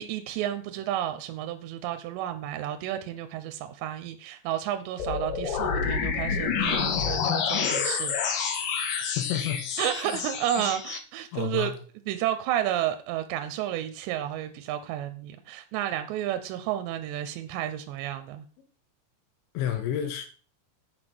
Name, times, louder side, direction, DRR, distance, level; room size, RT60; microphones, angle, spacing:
voice 1, 0.0-8.2 9.8-11.7 12.1-18.5, right 12 dB, 90° right, 2.9 m, -31 dB
sound 1, 5.0-11.0, left 6 dB, 65° left, 2.4 m, -28 dB
voice 2, 9.2-9.6 9.9-10.2 10.6-10.7 11.3-11.7 19.6-20.3, left 10 dB, 90° left, 3.5 m, -30 dB
8.3 x 6.1 x 6.2 m
omnidirectional pair, 5.1 m